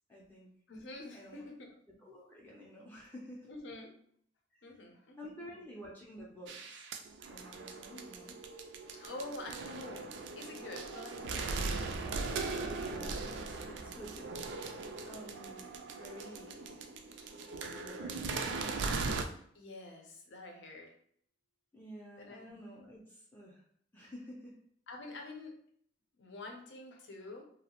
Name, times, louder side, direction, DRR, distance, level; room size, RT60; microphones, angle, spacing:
voice 1, 0.1-0.5 1.1-1.5 2.0-3.5 4.5-4.7 5.2-6.9 7.3-8.4 12.8-14.5 15.1-15.7 16.0-16.8 17.7-18.3 18.6-19.0 21.7-23.6 23.9-24.5, equal, 10° left, -4 dB, 0.4 m, -50 dB
voice 2, 0.7-1.7 3.5-3.9 4.6-5.6 8.9-12.0 19.5-20.9 22.2-22.5 24.9-25.6 26.2-27.4, left 2 dB, 80° left, 1 dB, 0.6 m, -47 dB
sound 1, 6.5-19.2, right 4 dB, 85° right, 0.3 m, -39 dB
2.7 x 2.0 x 2.8 m, 0.64 s
head